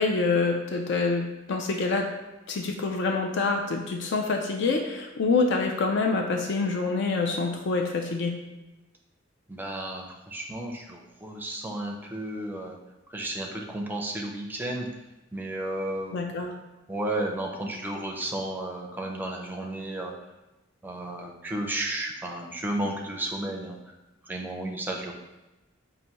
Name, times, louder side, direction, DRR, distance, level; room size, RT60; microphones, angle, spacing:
voice 1, 0.0-2.1 2.5-8.3 16.1-16.5, left 3 dB, 60° left, 3 dB, 0.4 m, -26 dB
voice 2, 9.5-12.8 13.1-14.9 15.3-16.2 16.9-20.1 20.8-23.8 24.3-25.1, right 1 dB, 10° right, 0 dB, 0.4 m, -33 dB
5.5 x 2.6 x 2.9 m, 1.0 s
head